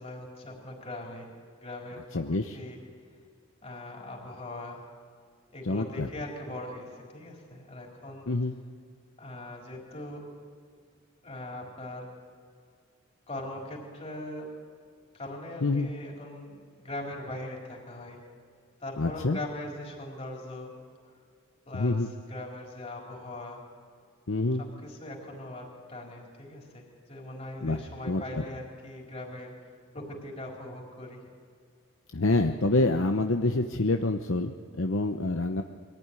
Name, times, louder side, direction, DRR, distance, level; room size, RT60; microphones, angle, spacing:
voice 1, 0.0-2.2 2.5-2.8 3.6-4.8 5.5-8.3 9.2-10.3 11.2-12.1 13.3-14.5 15.1-18.2 18.8-20.7 21.7-22.0 22.3-23.6 24.8-29.5 29.9-31.2, left 1 dB, 30° left, -1 dB, 4.5 m, -40 dB
voice 2, 2.1-2.6 5.6-6.1 8.3-8.6 15.6-15.9 19.0-19.4 21.7-22.1 24.3-24.6 27.6-28.4 32.1-35.6, left 2 dB, 60° left, 5 dB, 0.9 m, -27 dB
23.5 x 15.0 x 9.8 m, 2.2 s
head